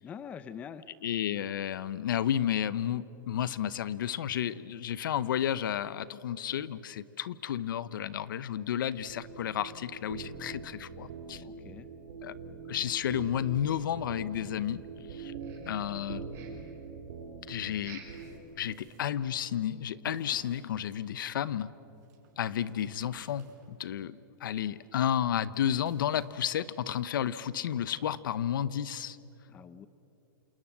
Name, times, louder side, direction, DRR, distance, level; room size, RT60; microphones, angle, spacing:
voice 1, 0.0-0.9 11.4-11.9 29.5-29.9, left 7 dB, 10° left, 14 dB, 0.6 m, -44 dB
voice 2, 1.0-11.4 12.2-12.3 12.7-14.8 15.1-15.3 15.7-16.4 17.5-18.0 18.6-21.7 22.4-29.2, left 10 dB, 70° left, 17 dB, 1.0 m, -32 dB
sound 1, 9.0-18.4, right 4 dB, 65° right, 4.4 m, -44 dB
sound 2, 15.4-16.0 16.3-16.8 17.8-18.3 18.6-18.7 19.2-19.3 19.8-19.9, right 8 dB, 25° right, 4.9 m, -51 dB
sound 3, 17.7-24.1 24.6-27.2, right 6 dB, 45° right, 5.5 m, -57 dB
28.5 x 27.5 x 7.5 m, 2.9 s
supercardioid pair, 170°, 11 cm